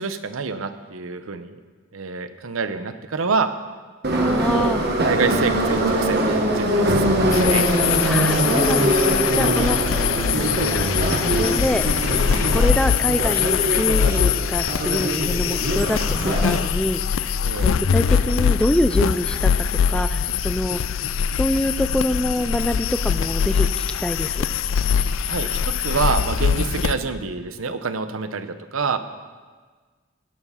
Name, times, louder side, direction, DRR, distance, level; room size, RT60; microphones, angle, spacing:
voice 1, 0.0-1.6 1.9-3.5 4.5-4.8 5.0-7.7 17.4-17.7 25.3-29.0, right 5 dB, 85° right, 10 dB, 0.8 m, -27 dB
Subway metro underground, 4.0-16.6, right 1 dB, 50° right, 1.5 m, -22 dB
voice 2, 4.1-4.8 8.0-11.8 12.5-20.8 21.3-24.5, left 1 dB, 5° left, 10 dB, 0.3 m, -26 dB
sound 1, 7.3-26.9, left 7 dB, 75° left, 0.4 m, -22 dB
17.5 x 7.2 x 5.6 m, 1.5 s
head